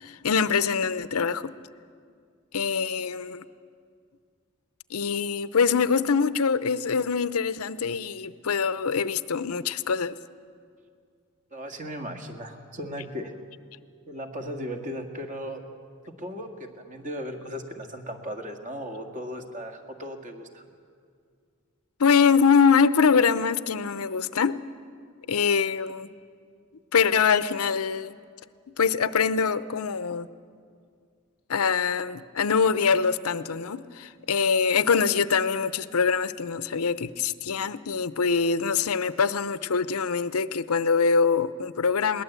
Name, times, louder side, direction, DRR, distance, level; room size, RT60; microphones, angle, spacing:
voice 1, 0.0-1.5 2.5-3.4 4.9-10.2 22.0-24.6 25.3-26.1 26.9-28.1 28.8-30.3 31.5-42.2, left 6 dB, 85° left, 0.7 m, -24 dB
voice 2, 11.5-13.3 14.1-15.6 16.1-20.6, equal, 35° right, 1.9 m, -36 dB
21.0 x 19.0 x 8.2 m
head